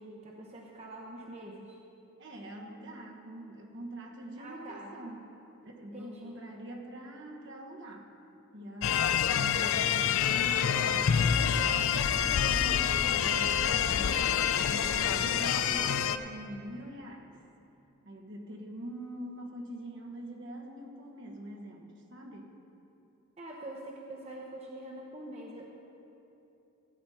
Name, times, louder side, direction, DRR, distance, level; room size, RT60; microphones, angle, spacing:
voice 1, 0.0-1.8 4.4-5.0 5.9-6.4 23.4-25.7, right 1 dB, 30° right, -1 dB, 0.9 m, -44 dB
voice 2, 2.2-5.3 5.6-8.1 8.5-9.1 9.4-11.2 11.8-14.2 14.7-17.4 18.0-22.5, right 1 dB, 55° right, 0 dB, 1.3 m, -44 dB
sound 1, 8.8-16.2, left 8 dB, 70° left, 0.4 m, -27 dB
14.5 x 8.6 x 4.3 m, 2.8 s
head